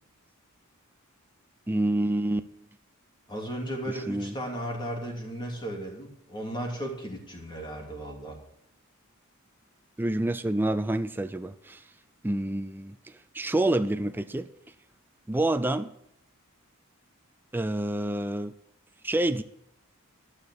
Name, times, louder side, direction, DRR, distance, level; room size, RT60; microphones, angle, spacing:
voice 1, 1.7-2.5 3.9-4.3 10.0-11.8 12.2-13.0 13.3-14.5 15.3-15.9 17.5-18.5 19.0-19.4, right 1 dB, 10° right, 10 dB, 0.4 m, -27 dB
voice 2, 3.3-8.4, right 1 dB, 20° left, 0 dB, 2.9 m, -35 dB
12.5 x 6.4 x 8.4 m, 0.74 s
head